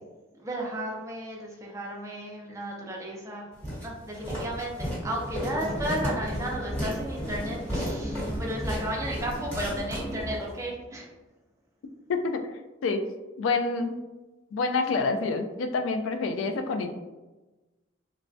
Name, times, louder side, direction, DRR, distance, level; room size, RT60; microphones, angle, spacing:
voice 1, 0.4-3.5 3.8-11.1, right 1 dB, 15° right, -1 dB, 0.4 m, -34 dB
Walk footsteps, 3.6-10.5, equal, 10° left, 1.0 m, -35 dB
sound 1, 5.0-10.5, equal, 35° left, 0.7 m, -36 dB
voice 2, 12.1-12.4 12.8-13.0 13.4-14.0 14.5-17.0, left 4 dB, 85° left, 7 dB, 0.3 m, -27 dB
3.2 x 2.1 x 2.6 m, 1.1 s
head